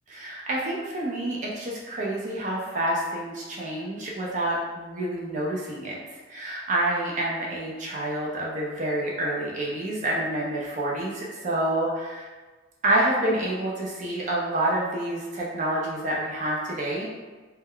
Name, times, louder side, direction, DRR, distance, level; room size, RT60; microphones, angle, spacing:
voice 1, 0.1-6.0 6.3-12.3 12.8-17.1, right 1 dB, 40° right, -4 dB, 0.4 m, -28 dB
2.2 x 2.1 x 3.5 m, 1.3 s
head